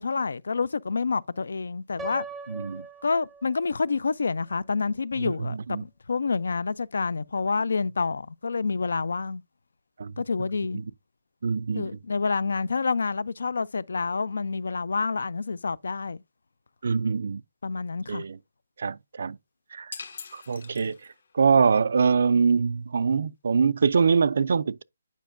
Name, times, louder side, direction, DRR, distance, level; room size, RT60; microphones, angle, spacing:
voice 1, 0.0-2.2 3.0-9.4 10.2-10.8 11.8-16.2 17.6-18.2, left 4 dB, 80° left, 0.4 m, -28 dB
Piano, 2.0-3.9, right 2 dB, 5° right, 0.5 m, -40 dB
voice 2, 2.5-2.8 5.2-5.8 10.0-10.1 10.7-10.9 11.4-11.9 16.8-17.4 18.1-18.4 18.8-19.4 19.7-19.9 20.3-21.0 21.3-24.8, right 5 dB, 55° right, 0.3 m, -24 dB
sound 1, 19.9-21.4, left 5 dB, 50° left, 0.9 m, -42 dB
9.1 x 5.1 x 2.5 m
hypercardioid pair, 175°, 0 cm